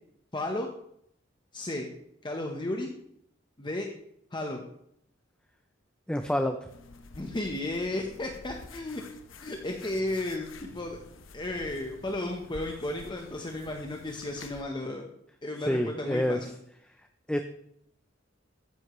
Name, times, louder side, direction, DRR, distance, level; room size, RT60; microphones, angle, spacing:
voice 1, 0.3-0.7 1.5-1.9 2.2-2.9 3.6-3.9 4.3-4.6 7.1-9.0 9.4-11.0 11.3-15.1 15.4-16.5, left 1 dB, 25° left, 2 dB, 1.0 m, -33 dB
voice 2, 6.1-6.7 15.6-16.4 17.3-17.4, left 1 dB, 5° left, 6 dB, 0.5 m, -27 dB
sound 1, 6.7-14.6, left 3 dB, 90° left, 1.0 m, -49 dB
14.0 x 9.7 x 3.1 m, 0.73 s
head